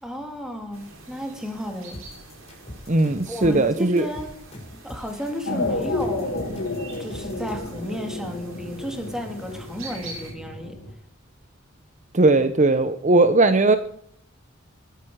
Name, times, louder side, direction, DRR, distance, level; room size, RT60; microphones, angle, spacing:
voice 1, 0.0-2.0 3.3-4.3 4.8-6.7 7.0-10.8, equal, 5° right, 3 dB, 2.9 m, -33 dB
sound 1, 0.7-10.3, right 2 dB, 85° right, 7.1 m, -45 dB
sound 2, 1.9-7.8, left 1 dB, 30° left, 6.4 m, -41 dB
voice 2, 2.9-4.0 12.1-13.8, right 2 dB, 40° right, 10 dB, 0.8 m, -18 dB
sound 3, 5.5-10.9, left 2 dB, 75° left, 3.0 m, -31 dB
20.5 x 10.5 x 4.8 m, 0.67 s
head